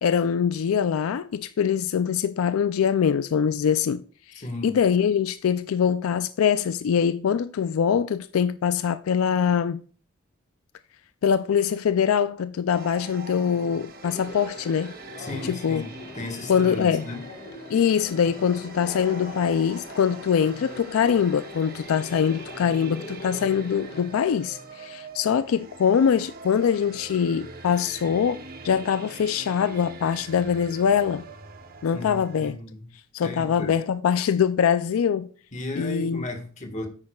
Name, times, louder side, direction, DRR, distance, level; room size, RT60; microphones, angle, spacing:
voice 1, 0.0-4.0 4.3-9.8 11.2-14.9 15.4-15.8 16.5-17.1 17.7-31.3 31.8-32.6 33.1-35.3 35.8-36.3, left 7 dB, 90° left, 0.4 m, -23 dB
voice 2, 4.4-4.8 15.2-17.2 31.9-32.8 33.2-33.7 35.5-36.9, left 2 dB, 35° left, 1.5 m, -35 dB
sound 1, 12.7-32.5, right 3 dB, 45° right, 0.9 m, -43 dB
Conversation, 14.0-24.0, left 2 dB, 50° left, 1.3 m, -42 dB
9.7 x 8.7 x 2.3 m
head